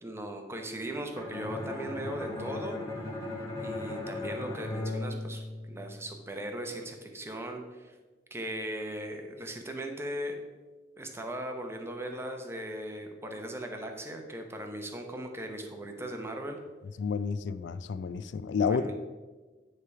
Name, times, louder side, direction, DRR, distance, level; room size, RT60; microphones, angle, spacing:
voice 1, 0.0-2.8 3.6-7.9 8.3-10.4 11.0-16.6 18.6-18.9, right 1 dB, 15° right, 3 dB, 0.7 m, -38 dB
Bowed string instrument, 1.1-6.1, left 2 dB, 20° left, 1.6 m, -37 dB
voice 2, 17.0-18.9, left 5 dB, 90° left, 13 dB, 0.3 m, -30 dB
9.4 x 3.4 x 4.7 m, 1.3 s
head